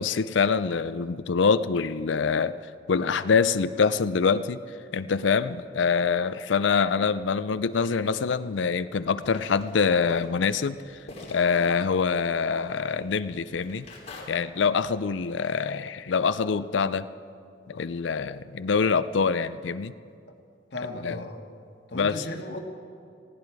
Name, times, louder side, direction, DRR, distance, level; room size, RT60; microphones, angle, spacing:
voice 1, 0.0-2.6 2.9-4.6 4.9-11.0 11.3-13.9 14.3-17.1 17.7-19.9 21.0-21.2 21.9-22.2, left 5 dB, 80° left, 13 dB, 0.5 m, -25 dB
sound 1, 9.2-14.2, left 2 dB, 35° left, 3.3 m, -48 dB
voice 2, 20.7-21.5 21.9-22.6, left 1 dB, 60° left, 3 dB, 1.8 m, -36 dB
18.5 x 16.5 x 4.8 m, 2.4 s
head